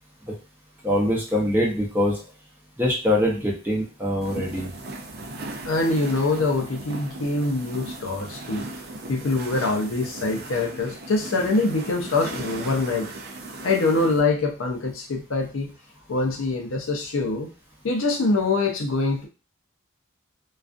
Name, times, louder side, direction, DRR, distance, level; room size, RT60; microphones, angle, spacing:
voice 1, 0.8-2.2 2.8-4.7, left 1 dB, 10° right, -4 dB, 0.6 m, -23 dB
sound 1, 4.2-14.2, right 2 dB, 45° right, 0.4 m, -37 dB
voice 2, 5.6-8.6 9.1-13.1 13.6-15.7 16.1-17.5 17.8-19.3, left 3 dB, 65° left, 2 dB, 0.5 m, -24 dB
2.4 x 2.3 x 2.4 m, 0.33 s
head